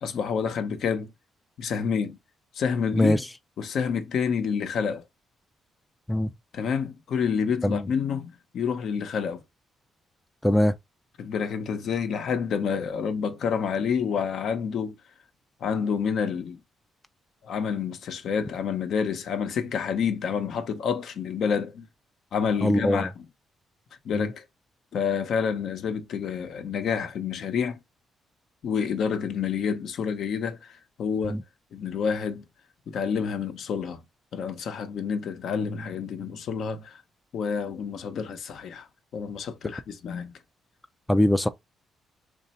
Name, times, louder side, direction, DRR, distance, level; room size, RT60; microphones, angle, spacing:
voice 1, 0.0-1.1 1.6-2.2 2.5-3.2 3.6-5.0 6.5-9.4 11.2-14.9 15.6-16.6 17.4-21.9 22.3-23.3 24.0-24.4 24.9-27.8 28.6-31.4 31.7-32.4 32.9-34.0 34.3-37.0 37.3-38.9 39.1-40.3, left 6 dB, 70° left, 0.8 m, -28 dB
voice 2, 22.6-23.1 31.3-31.4 41.1-41.5, left 1 dB, 5° left, 0.4 m, -21 dB
3.2 x 2.6 x 4.1 m
cardioid pair, 90°, 0 cm